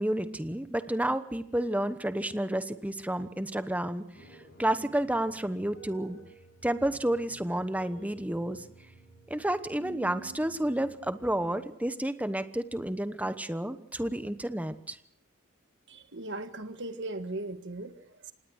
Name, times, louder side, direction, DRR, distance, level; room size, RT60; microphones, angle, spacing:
voice 1, 0.0-4.0 4.3-6.2 6.6-8.6 9.3-15.0, right 1 dB, 5° right, 11 dB, 1.0 m, -30 dB
sound 1, 4.1-11.5, right 3 dB, 50° left, 7.6 m, -52 dB
voice 2, 15.9-18.3, right 2 dB, 55° right, 9 dB, 1.7 m, -38 dB
26.0 x 19.5 x 6.4 m, 0.72 s
head